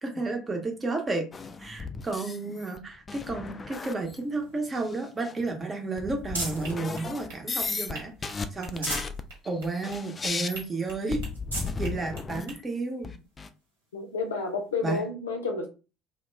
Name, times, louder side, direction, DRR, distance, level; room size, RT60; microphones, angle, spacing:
voice 1, 0.0-1.2 1.6-8.9 9.4-11.2 11.8-13.1 14.8-15.0, right 3 dB, 25° right, 0.8 m, -32 dB
sound 1, 1.3-2.8 3.1-4.2 4.8-4.9 5.2-5.3 6.0-7.9 8.2-12.6 13.0-13.5, left 4 dB, 25° left, 0.3 m, -35 dB
sound 2, 4.1-6.8 7.3-8.1 8.5-9.2 9.6-9.7 10.1-10.2 10.8-10.9 11.3-11.8 12.6-12.7 14.4-14.5, right 2 dB, 85° right, 0.8 m, -38 dB
sound 3, 6.6-12.6, right 4 dB, 65° right, 1.3 m, -47 dB
voice 2, 13.9-15.7, left 4 dB, 75° left, 0.5 m, -30 dB
2.3 x 2.2 x 3.1 m
figure-of-eight pair, 60°, 0 cm